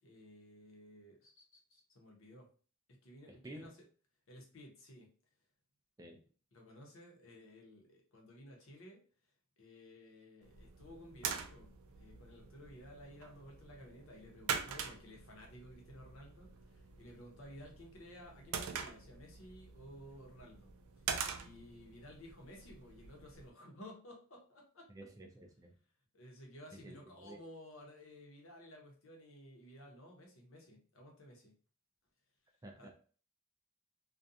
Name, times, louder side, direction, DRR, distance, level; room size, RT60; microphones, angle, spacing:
voice 1, 0.0-2.5 2.9-3.7 4.3-5.1 6.5-9.0 9.6-20.7 21.1-24.9 26.1-31.5 32.8-32.9, equal, 70° left, 0 dB, 0.8 m, -55 dB
voice 2, 3.3-3.7 6.0-6.2 24.9-25.7 26.7-27.4 32.6-32.9, right 1 dB, 15° right, 3 dB, 0.3 m, -52 dB
sound 1, 10.4-23.5, right 6 dB, 90° right, 0.4 m, -45 dB
2.4 x 2.2 x 2.6 m, 0.40 s
head